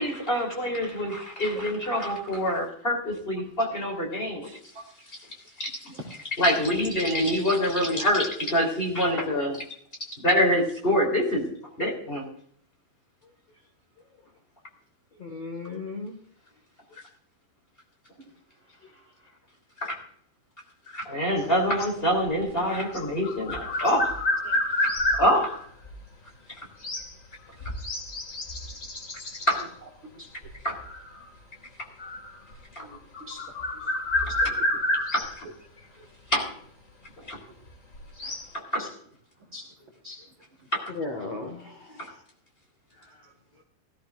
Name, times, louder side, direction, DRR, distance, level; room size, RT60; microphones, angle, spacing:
voice 1, 0.0-4.6 5.6-5.9 6.4-9.6 10.2-11.5 11.8-12.2 19.8-19.9 20.9-24.2 24.8-24.9 25.2-25.6 29.5-29.7 30.6-30.8 32.7-32.9 35.1-35.3 36.3-36.5 37.2-37.4 38.5-38.8 40.7-40.8 42.0-42.1, equal, 15° left, 1 dB, 2.8 m, -25 dB
voice 2, 15.2-16.2 32.8-32.9 40.9-42.2 43.1-43.2, left 3 dB, 55° left, 2 dB, 1.9 m, -36 dB
voice 3, 18.6-19.4 24.4-24.8 30.0-30.5 33.2-34.0 34.2-34.8 35.8-36.0 38.2-38.9 39.4-39.7 40.0-40.2 40.6-40.7 41.2-41.3 41.7-41.8, equal, 85° right, 1 dB, 1.1 m, -46 dB
sound 1, 21.4-25.9 26.8-27.1 27.6-29.6 30.4-31.4 32.0-32.6 32.9-35.4 36.2-36.3 37.7-38.5, left 1 dB, 85° left, 0.7 m, -30 dB
19.0 x 13.5 x 2.5 m, 0.62 s
omnidirectional pair, 5.3 m